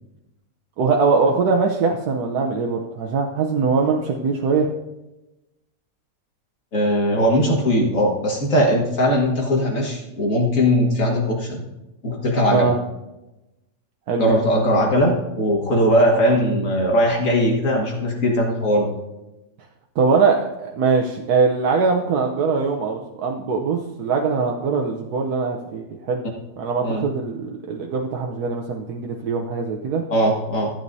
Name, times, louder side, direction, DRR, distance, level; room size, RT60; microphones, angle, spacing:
voice 1, 0.8-4.7 12.5-12.8 14.1-14.4 20.0-26.2 26.6-30.0, right 4 dB, 90° right, 1 dB, 1.3 m, -22 dB
voice 2, 6.7-11.6 12.0-12.7 14.2-18.9 26.8-27.0 30.1-30.7, equal, 60° left, -1 dB, 2.1 m, -19 dB
15.0 x 8.8 x 2.7 m, 1.0 s
omnidirectional pair, 1.6 m